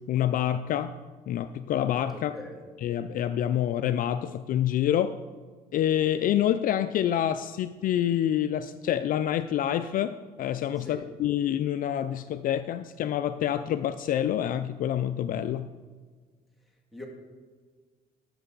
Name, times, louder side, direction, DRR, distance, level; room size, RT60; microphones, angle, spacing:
voice 1, 0.1-0.9 1.3-2.3 2.8-5.1 5.7-15.7, left 11 dB, 55° left, 11 dB, 0.4 m, -27 dB
voice 2, 2.1-2.6 10.8-11.0 16.9-17.0, left 2 dB, ahead, -3 dB, 2.3 m, -42 dB
12.5 x 6.4 x 3.9 m, 1.5 s
cardioid pair, 110°, 17 cm